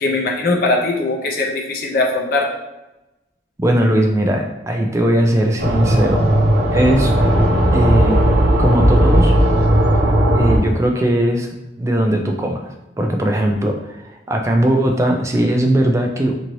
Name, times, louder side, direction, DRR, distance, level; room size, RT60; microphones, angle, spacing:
voice 1, 0.0-2.5, left 2 dB, 50° left, 0 dB, 0.5 m, -20 dB
voice 2, 3.6-6.2 6.7-7.1 7.7-8.3 8.6-9.3 10.3-11.5 11.8-16.3, right 1 dB, 15° right, 3 dB, 0.3 m, -18 dB
sound 1, 5.6-10.6, right 1 dB, 55° right, 0.6 m, -15 dB
2.7 x 2.6 x 3.0 m, 0.99 s
head